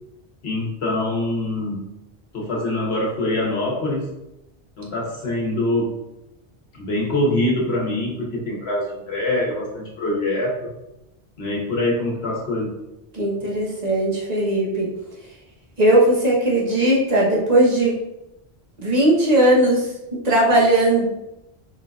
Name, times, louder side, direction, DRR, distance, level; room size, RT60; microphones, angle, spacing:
voice 1, 0.4-1.9 2.3-4.1 4.8-6.0 6.7-10.7 11.4-12.8, left 1 dB, 70° left, -3 dB, 1.2 m, -24 dB
voice 2, 13.1-14.9 15.8-17.9 18.8-21.1, right 1 dB, 40° right, -4 dB, 1.1 m, -18 dB
4.6 x 3.8 x 2.3 m, 0.90 s
omnidirectional pair, 1.1 m